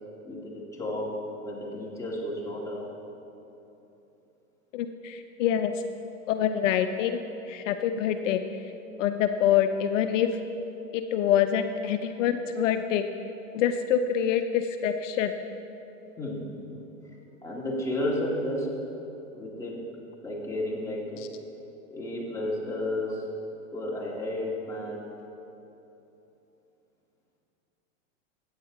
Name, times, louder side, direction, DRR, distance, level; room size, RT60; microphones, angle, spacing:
voice 1, 0.2-2.9 11.7-11.8 16.2-17.2 17.4-18.8 19.3-19.8 20.2-21.2 21.9-23.3 23.7-25.0, left 1 dB, 10° left, -5 dB, 2.2 m, -32 dB
voice 2, 4.7-5.8 6.3-7.2 7.5-8.4 9.0-10.3 10.9-13.1 13.5-15.3, left 9 dB, 70° left, 8 dB, 0.6 m, -25 dB
15.0 x 8.9 x 3.9 m, 3.0 s
hypercardioid pair, 120°, 40 cm